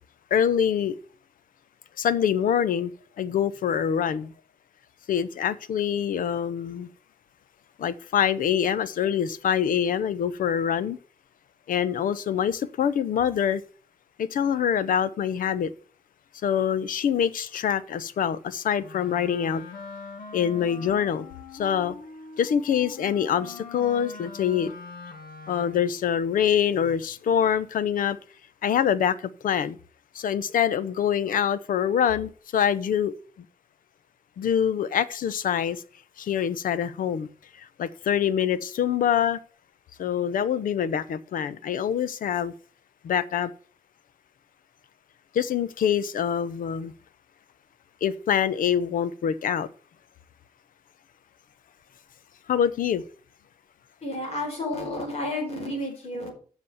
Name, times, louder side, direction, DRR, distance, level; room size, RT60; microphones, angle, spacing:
voice 1, 0.3-1.0 2.0-2.9 3.2-4.3 5.1-6.9 7.8-11.0 11.7-13.6 14.2-15.7 16.4-19.6 20.3-21.3 21.5-21.9 22.4-24.7 25.5-28.2 28.6-29.2 29.4-29.8 30.1-33.1 34.4-35.8 36.2-37.3 37.8-39.4 40.0-42.5 43.0-43.5 45.3-46.9 48.0-49.7 52.5-53.0, left 8 dB, 70° left, 0.7 m, -25 dB
Wind instrument woodwind instrument, 18.8-26.0, left 4 dB, 90° left, 1.9 m, -42 dB
voice 2, 54.0-56.3, left 1 dB, 45° left, 4.8 m, -31 dB
7.7 x 6.2 x 7.0 m
wide cardioid pair, 160°, 15 cm